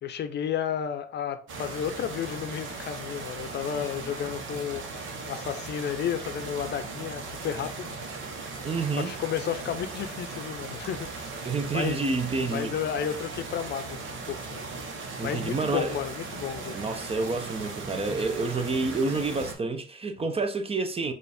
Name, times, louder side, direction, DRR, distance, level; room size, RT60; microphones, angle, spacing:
voice 1, 0.0-8.0 9.0-11.4 11.7-12.1 12.5-14.7 14.9-16.8, left 9 dB, 60° left, 0.5 m, -32 dB
sound 1, 1.5-19.5, right 3 dB, 75° right, 1.0 m, -38 dB
voice 2, 8.6-9.1 11.5-12.7 15.2-16.0 16.7-21.1, right 3 dB, 30° right, 0.6 m, -29 dB
4.4 x 2.5 x 3.4 m
cardioid pair, 90°, 20 cm